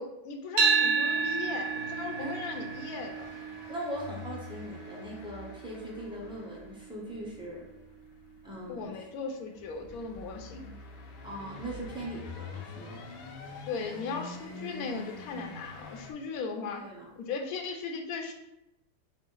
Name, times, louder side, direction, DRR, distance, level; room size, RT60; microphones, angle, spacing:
voice 1, 0.0-3.3 8.7-10.7 13.6-16.8 17.2-18.3, left 4 dB, 70° left, 4 dB, 1.0 m, -37 dB
sound 1, 0.6-8.8, right 5 dB, 70° right, 0.9 m, -32 dB
sound 2, 1.0-16.1, left 3 dB, 90° left, 1.2 m, -46 dB
voice 2, 3.7-7.6 8.4-9.0 11.2-13.0 16.7-17.1, right 1 dB, 5° right, -5 dB, 0.4 m, -40 dB
4.8 x 2.0 x 3.8 m, 0.91 s
omnidirectional pair, 1.8 m